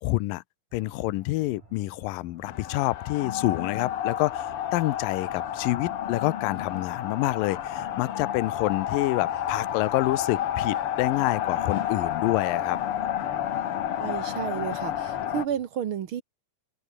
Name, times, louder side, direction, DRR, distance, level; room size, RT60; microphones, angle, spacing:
voice 1, 0.0-0.4 0.7-12.8, left 19 dB, 80° left, 2.4 m, -27 dB
sound 1, 0.7-15.7, right 5 dB, 55° right, 6.0 m, -54 dB
sound 2, 2.4-15.5, left 10 dB, 60° left, 1.5 m, -30 dB
voice 2, 13.9-16.2, right 9 dB, 75° right, 1.2 m, -31 dB
open air
omnidirectional pair, 4.1 m